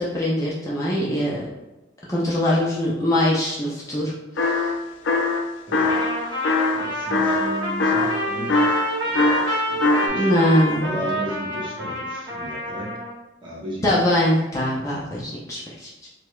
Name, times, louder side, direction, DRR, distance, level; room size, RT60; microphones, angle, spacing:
voice 1, 0.0-1.5 2.1-4.1 4.4-4.5 10.1-11.1 13.8-16.1, left 1 dB, 15° left, -6 dB, 0.4 m, -22 dB
sound 1, 4.4-4.8 5.1-6.2 6.4-10.1, left 2 dB, 80° left, 0.4 m, -21 dB
voice 2, 5.7-9.4 9.7-10.3 10.8-12.9 13.4-13.9, right 1 dB, 25° right, -5 dB, 0.8 m, -35 dB
Trumpet, 5.8-13.1, equal, 55° right, 0.9 m, -28 dB
4.7 x 2.1 x 2.3 m, 1.0 s
head